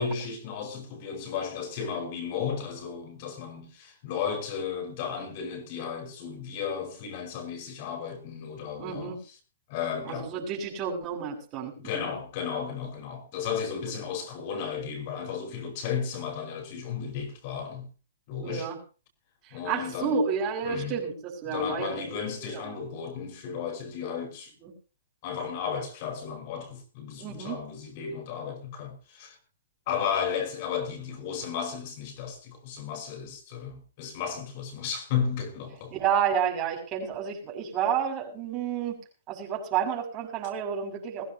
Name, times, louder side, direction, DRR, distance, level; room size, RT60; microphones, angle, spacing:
voice 1, 0.0-9.3 9.7-10.3 11.8-17.9 18.3-18.7 19.5-20.2 20.6-21.0 21.5-24.5 25.2-29.4 29.9-35.9, left 7 dB, 40° left, 5.2 m, -34 dB
voice 2, 8.8-9.2 10.0-12.1 13.8-13.9 18.4-18.8 19.4-22.0 22.5-22.6 24.6-24.7 27.2-27.6 35.9-39.0 39.3-41.3, right 7 dB, 25° right, 6.7 m, -30 dB
21.5 x 16.0 x 2.9 m
hypercardioid pair, 150°, 0 cm